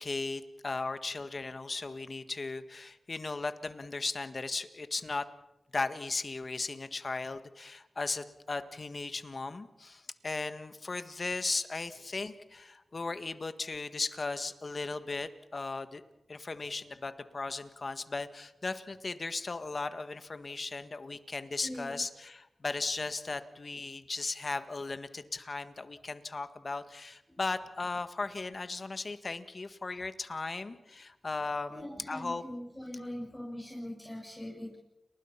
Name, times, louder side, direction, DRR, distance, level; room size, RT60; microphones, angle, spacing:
voice 1, 0.0-5.2 5.7-16.0 16.3-32.4, left 3 dB, 50° left, 10 dB, 1.7 m, -37 dB
voice 2, 21.6-22.0 31.7-34.8, left 1 dB, 15° left, -2 dB, 7.5 m, -41 dB
30.0 x 20.0 x 5.9 m, 0.97 s
cardioid pair, 45°, 0 cm